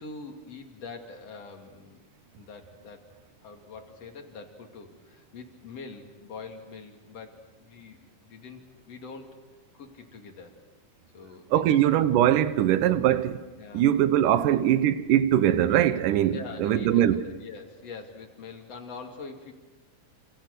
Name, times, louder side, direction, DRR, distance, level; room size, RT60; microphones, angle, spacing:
voice 1, 0.0-2.0 2.3-3.1 3.4-9.4 9.7-10.6 11.1-11.8 12.5-12.8 13.6-13.9 14.4-14.6 16.3-19.5, left 4 dB, 50° left, 3.4 m, -44 dB
voice 2, 11.5-13.4 13.7-17.2, right 11 dB, 75° right, 2.4 m, -22 dB
28.5 x 27.0 x 6.7 m
omnidirectional pair, 3.9 m